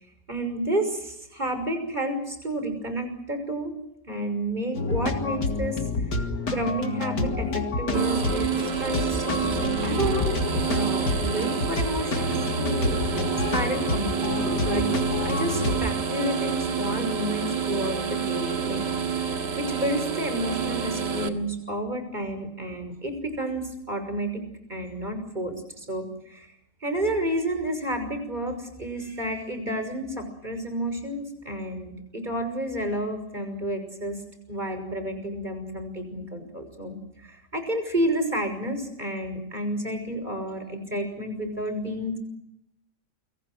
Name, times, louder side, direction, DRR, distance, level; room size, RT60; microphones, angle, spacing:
voice 1, 0.3-3.7 4.1-5.8 6.5-10.4 10.7-13.2 13.5-14.9 15.2-18.8 19.1-24.4 24.7-26.5 26.8-34.2 34.5-42.2, right 1 dB, 25° right, 8 dB, 6.3 m, -30 dB
sound 1, 4.7-15.8, left 3 dB, 75° left, 2.8 m, -29 dB
sound 2, 7.9-21.3, right 6 dB, 85° right, 2.6 m, -28 dB
29.5 x 24.5 x 6.4 m, 0.81 s
omnidirectional pair, 1.8 m